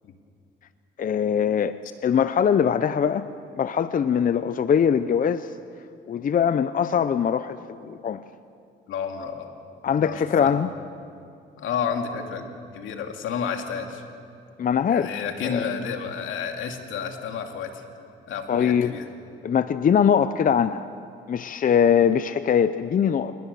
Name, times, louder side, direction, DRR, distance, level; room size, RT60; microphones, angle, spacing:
voice 1, 1.0-1.8 2.0-5.5 6.1-8.2 9.8-10.7 14.6-15.1 15.4-15.7 18.5-18.9 19.4-20.9 21.3-23.3, left 8 dB, 45° left, 13 dB, 0.6 m, -22 dB
voice 2, 8.9-9.5 10.0-10.5 11.6-14.0 14.9-17.8 18.3-19.1, left 6 dB, 80° left, 4 dB, 2.4 m, -31 dB
26.5 x 20.0 x 6.9 m, 2.5 s
cardioid pair, 90°, 20 cm